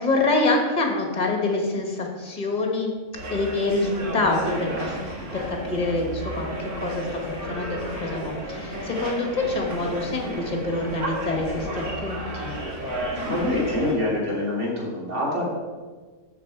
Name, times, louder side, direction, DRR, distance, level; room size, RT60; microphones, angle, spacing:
voice 1, 0.0-2.9 3.3-6.4 6.8-12.5, left 2 dB, 30° left, 2 dB, 1.6 m, -26 dB
sound 1, 3.1-13.9, right 1 dB, 90° right, 2.7 m, -32 dB
voice 2, 13.2-15.5, left 1 dB, 50° right, -5 dB, 3.1 m, -25 dB
13.5 x 4.8 x 4.7 m, 1.4 s
omnidirectional pair, 1.5 m